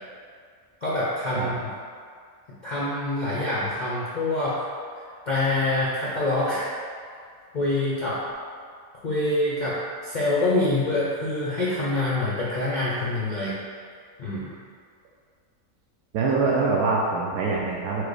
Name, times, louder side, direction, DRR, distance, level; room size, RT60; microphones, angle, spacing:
voice 1, 0.8-1.6 2.6-4.7 5.3-6.7 7.5-8.2 9.0-9.8 10.0-13.5 14.2-14.5, left 2 dB, 50° left, -8 dB, 0.5 m, -25 dB
voice 2, 16.1-18.0, right 3 dB, 75° right, -3 dB, 1.0 m, -24 dB
4.8 x 2.1 x 4.7 m, 2.1 s
omnidirectional pair, 1.6 m